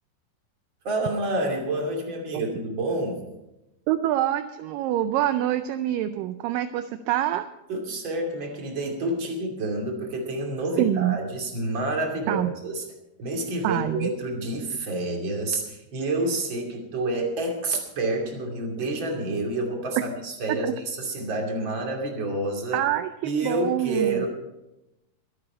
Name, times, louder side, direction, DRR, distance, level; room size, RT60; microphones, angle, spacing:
voice 1, 0.8-3.2 7.7-12.8 13.2-22.8 23.2-24.3, right 2 dB, 35° right, 1 dB, 2.8 m, -28 dB
voice 2, 3.9-7.5 10.8-11.2 12.3-12.5 13.6-14.1 20.5-20.7 22.7-24.3, right 12 dB, 80° right, 10 dB, 2.0 m, -26 dB
24.0 x 8.8 x 4.5 m, 0.94 s
omnidirectional pair, 4.5 m